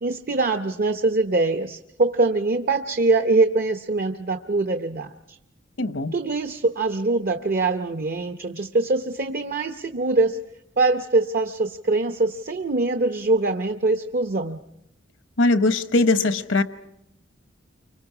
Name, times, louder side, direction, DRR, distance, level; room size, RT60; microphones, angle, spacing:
voice 1, 0.0-5.4 6.1-10.4 10.8-14.6, right 3 dB, 50° right, 7 dB, 0.8 m, -23 dB
voice 2, 5.8-6.1 15.4-16.6, left 2 dB, 75° left, 11 dB, 1.1 m, -20 dB
29.5 x 25.0 x 4.9 m, 0.80 s
head